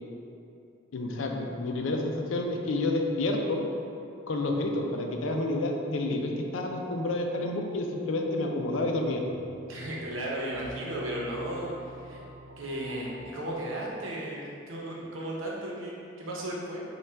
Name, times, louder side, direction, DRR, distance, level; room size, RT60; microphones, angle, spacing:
voice 1, 0.9-3.6 4.3-9.2, left 2 dB, 75° left, 2 dB, 0.5 m, -29 dB
sound 1, 9.3-14.0, right 1 dB, 50° right, 0.4 m, -47 dB
voice 2, 9.7-12.2 12.6-16.8, right 1 dB, 85° right, -4 dB, 0.8 m, -35 dB
5.4 x 2.3 x 3.4 m, 2.6 s
head